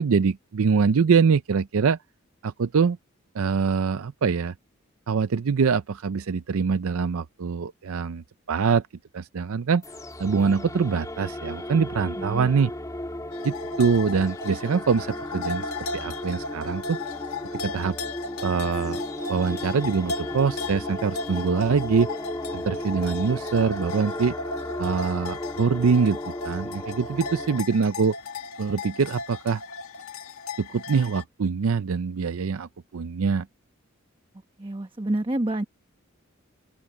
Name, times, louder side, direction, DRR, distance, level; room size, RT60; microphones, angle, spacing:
voice 1, 0.0-2.0 2.4-3.0 3.3-4.5 5.1-8.8 9.1-9.8 10.2-12.7 13.4-17.0 17.6-18.0 18.4-19.0 19.3-22.1 22.5-24.3 24.8-28.2 28.6-29.6 30.6-33.5, right 5 dB, 80° right, 0.5 m, -24 dB
sound 1, 9.8-27.6, left 1 dB, 15° left, 2.4 m, -35 dB
voice 2, 12.2-12.5 34.6-35.6, right 1 dB, 25° right, 1.0 m, -28 dB
sound 2, 13.3-31.2, left 3 dB, 85° left, 1.8 m, -36 dB
open air
head